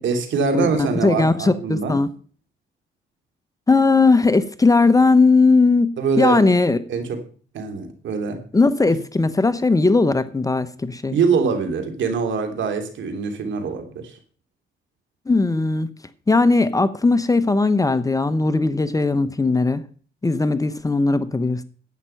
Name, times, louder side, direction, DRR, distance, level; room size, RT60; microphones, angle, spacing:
voice 1, 0.0-2.0 6.0-6.4 6.9-7.2 7.5-8.4 11.1-14.2, right 5 dB, 70° right, 3.0 m, -23 dB
voice 2, 1.0-2.1 3.7-6.8 8.5-11.2 15.3-15.9 16.3-19.8 20.2-21.6, left 3 dB, 15° left, 0.9 m, -18 dB
11.0 x 9.0 x 5.8 m
cardioid pair, 90°, 20 cm